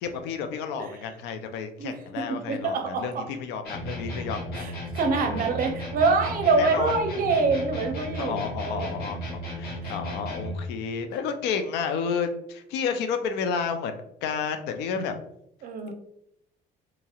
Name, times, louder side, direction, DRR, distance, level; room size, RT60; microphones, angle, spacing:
voice 1, 0.0-4.6 5.2-5.5 6.6-6.9 8.1-9.2 9.6-15.1, left 6 dB, 85° left, 8 dB, 0.4 m, -31 dB
voice 2, 1.8-3.3 4.6-8.4 8.6-8.9 15.6-15.9, right 4 dB, 55° right, 5 dB, 0.6 m, -25 dB
sound 1, 3.6-10.6, equal, 70° left, 1.2 m, -35 dB
2.9 x 2.7 x 2.3 m, 0.74 s
cardioid pair, 110°, 17 cm